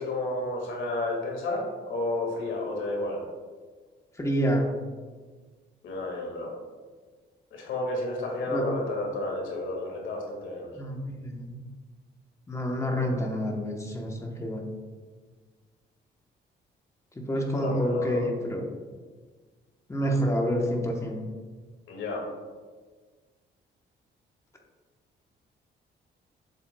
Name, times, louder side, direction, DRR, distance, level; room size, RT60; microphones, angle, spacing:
voice 1, 0.0-3.2 5.8-6.5 7.5-10.7 17.5-18.2 21.9-22.2, left 2 dB, 80° left, -1 dB, 1.9 m, -31 dB
voice 2, 4.2-4.7 8.5-8.6 10.8-11.6 12.5-14.7 17.2-18.7 19.9-21.2, equal, 15° left, 1 dB, 1.0 m, -28 dB
7.3 x 7.3 x 2.2 m, 1.5 s
cardioid pair, 125°, 19 cm